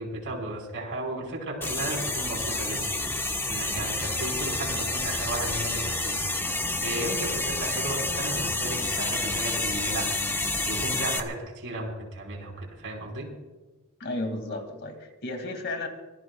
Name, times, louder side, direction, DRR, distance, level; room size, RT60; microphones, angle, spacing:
voice 1, 0.0-6.2 6.8-10.1 10.6-13.3, right 1 dB, 60° right, 1 dB, 4.8 m, -35 dB
sound 1, 1.6-11.2, left 2 dB, 10° left, 1.2 m, -29 dB
voice 2, 14.0-15.9, left 2 dB, 50° left, 5 dB, 2.3 m, -33 dB
25.0 x 19.0 x 2.4 m, 1.2 s
head